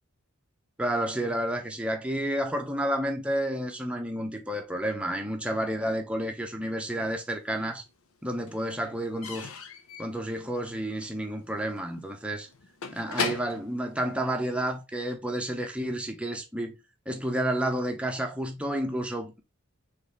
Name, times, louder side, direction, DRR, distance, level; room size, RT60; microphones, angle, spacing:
voice 1, 0.8-7.8 8.2-9.5 10.0-12.5 12.9-16.8 17.1-19.4, right 1 dB, 5° right, 0.7 m, -30 dB
Slam / Squeak / Wood, 7.0-7.8 8.1-14.8, left 5 dB, 90° left, 0.7 m, -39 dB
4.1 x 3.2 x 3.3 m
head